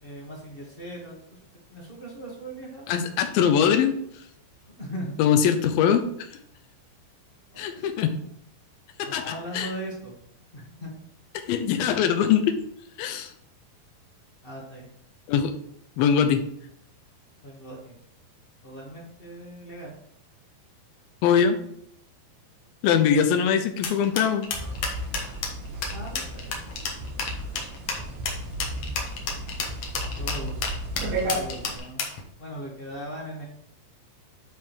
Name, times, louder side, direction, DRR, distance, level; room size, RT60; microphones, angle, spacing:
voice 1, 0.0-1.1 1.7-2.9 4.8-5.1 7.5-7.9 9.0-10.2 10.5-10.9 14.4-14.9 17.4-17.9 18.6-19.9 25.9-26.6 27.0-27.1 30.1-30.7 31.0-32.1 32.4-33.4, right 1 dB, 30° left, -3 dB, 1.0 m, -39 dB
voice 2, 2.9-4.0 5.2-6.0 7.6-8.1 9.0-9.7 11.5-12.6 13.0-13.3 15.3-15.5 16.0-16.4 21.2-21.6 22.8-24.5, left 8 dB, 85° left, 8 dB, 2.6 m, -22 dB
sound 1, 23.8-32.2, left 5 dB, 60° left, 1.9 m, -31 dB
sound 2, 24.5-31.8, right 1 dB, 80° right, 3.3 m, -34 dB
10.5 x 3.7 x 4.8 m, 0.71 s
omnidirectional pair, 4.1 m